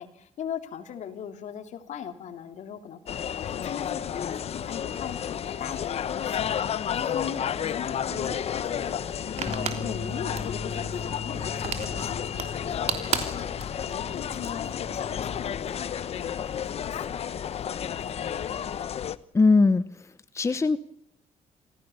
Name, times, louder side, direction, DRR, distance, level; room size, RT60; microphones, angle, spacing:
voice 1, 0.0-18.6, left 8 dB, 70° left, 8 dB, 2.9 m, -39 dB
sound 1, 3.1-19.2, left 9 dB, 55° left, 1.0 m, -32 dB
sound 2, 7.3-14.7, right 7 dB, 55° right, 3.4 m, -36 dB
Bass guitar, 9.5-15.7, left 3 dB, 5° left, 4.4 m, -39 dB
voice 2, 19.3-20.0 20.3-20.8, left 3 dB, 25° left, 13 dB, 0.9 m, -20 dB
26.5 x 17.0 x 7.0 m, 0.73 s
cardioid pair, 110°, 13 cm